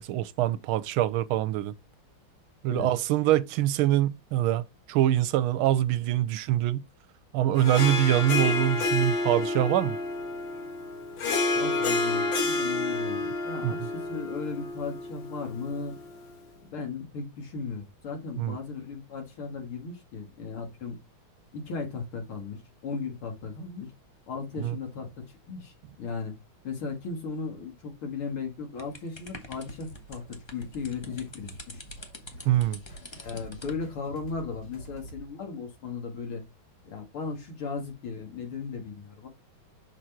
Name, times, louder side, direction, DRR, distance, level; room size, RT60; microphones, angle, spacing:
voice 1, 0.0-1.7 2.6-6.8 7.3-10.0 13.6-13.9 18.4-18.6 24.6-24.8 32.5-32.8, right 13 dB, 80° right, 1.4 m, -24 dB
Harp, 7.6-16.2, left 3 dB, 65° left, 1.9 m, -29 dB
voice 2, 11.6-16.0 16.7-21.0 21.5-23.9 24.3-26.3 26.6-31.8 33.2-36.4 36.8-39.3, left 4 dB, 85° left, 2.8 m, -36 dB
sound 1, 28.8-33.8, left 1 dB, 35° left, 0.4 m, -46 dB
sound 2, 29.7-35.3, right 1 dB, 50° left, 2.8 m, -48 dB
6.3 x 4.0 x 4.3 m
omnidirectional pair, 2.3 m